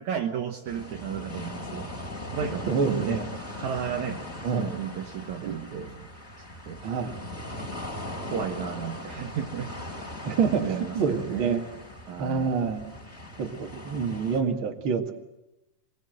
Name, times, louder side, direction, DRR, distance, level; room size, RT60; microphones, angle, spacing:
voice 1, 0.0-1.9 2.3-3.2 3.5-4.2 4.5-6.1 6.7-6.8 8.3-9.7 10.6-11.7 12.1-12.5, right 8 dB, 65° right, 4 dB, 2.3 m, -33 dB
sound 1, 0.7-14.4, left 1 dB, 10° left, 4.6 m, -39 dB
voice 2, 2.7-3.3 4.4-4.7 6.8-7.1 10.3-11.7 12.2-12.8 13.4-15.2, right 5 dB, 45° right, 5 dB, 2.2 m, -27 dB
24.5 x 21.0 x 7.9 m, 0.93 s
omnidirectional pair, 3.9 m